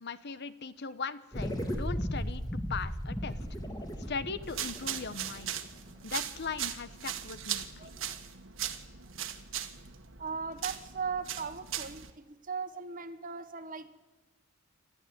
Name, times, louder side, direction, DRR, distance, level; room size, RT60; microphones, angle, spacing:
voice 1, 0.0-3.4 4.1-5.5 6.0-7.9, left 5 dB, 55° left, 14 dB, 1.0 m, -39 dB
sound 1, 1.3-6.0, equal, 20° left, 2.7 m, -36 dB
sound 2, 4.4-12.1, right 10 dB, 65° right, 1.6 m, -39 dB
voice 2, 7.8-8.2 10.2-14.0, right 5 dB, 40° right, 9 dB, 1.4 m, -38 dB
28.0 x 13.0 x 9.4 m, 1.2 s
head